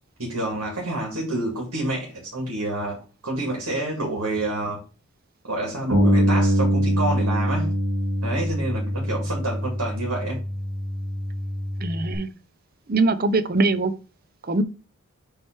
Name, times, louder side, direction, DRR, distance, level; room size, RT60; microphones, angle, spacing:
voice 1, 0.2-4.8 5.5-7.8 8.2-10.4, right 2 dB, 80° right, -1 dB, 2.2 m, -28 dB
Bass guitar, 5.9-12.2, equal, 55° right, 2.1 m, -24 dB
voice 2, 11.8-12.3 12.9-13.9 14.5-14.6, right 3 dB, 40° right, 12 dB, 0.6 m, -22 dB
7.6 x 3.2 x 4.5 m, 0.34 s
head